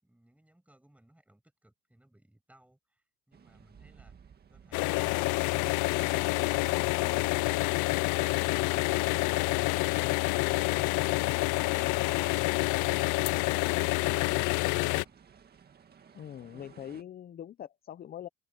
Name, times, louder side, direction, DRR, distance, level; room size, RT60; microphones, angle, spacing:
voice 1, 0.0-4.2 4.5-7.5 8.0-9.1 9.5-11.2 11.5-15.2, right 1 dB, 5° right, 6.1 m, -61 dB
sound 1, 3.3-17.0, right 7 dB, 30° right, 2.0 m, -57 dB
sound 2, 4.7-15.0, left 23 dB, 70° left, 0.5 m, -28 dB
voice 2, 16.1-18.3, left 10 dB, 30° left, 0.6 m, -43 dB
cardioid pair, 125°, 32 cm